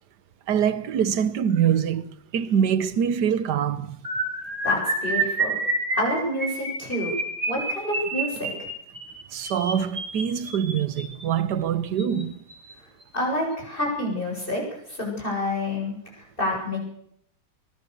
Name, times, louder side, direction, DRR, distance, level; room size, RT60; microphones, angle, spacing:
voice 1, 0.5-2.1 2.3-4.0 9.3-12.4, right 8 dB, 70° right, 1.6 m, -24 dB
sound 1, 4.0-11.2 12.0-12.2 12.5-12.7 13.0-13.2, right 2 dB, 40° right, 6.0 m, -29 dB
voice 2, 4.6-5.6 5.9-7.1 7.5-8.7 13.1-14.6 14.9-16.8, left 1 dB, 30° left, 8.2 m, -28 dB
24.0 x 20.0 x 6.9 m
omnidirectional pair, 1.9 m